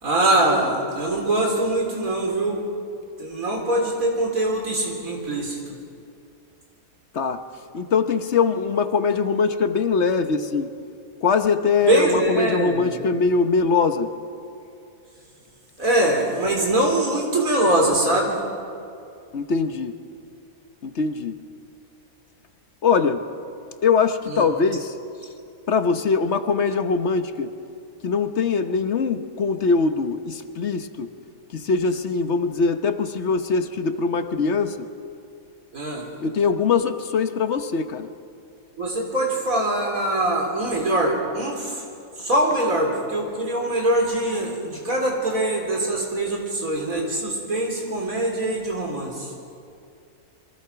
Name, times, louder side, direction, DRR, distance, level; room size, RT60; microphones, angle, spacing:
voice 1, 0.0-2.6 3.2-5.6 11.8-13.0 15.8-18.4 24.3-24.5 35.7-36.1 38.8-41.8 42.2-49.3, right 1 dB, 70° right, 1 dB, 4.2 m, -23 dB
voice 2, 7.7-10.7 11.2-14.1 19.3-19.9 20.8-21.3 22.8-23.2 23.8-24.9 25.7-27.5 28.0-31.1 31.5-34.8 36.2-38.1, left 5 dB, 55° left, 9 dB, 1.2 m, -22 dB
27.5 x 23.0 x 5.8 m, 2.5 s
omnidirectional pair, 1.5 m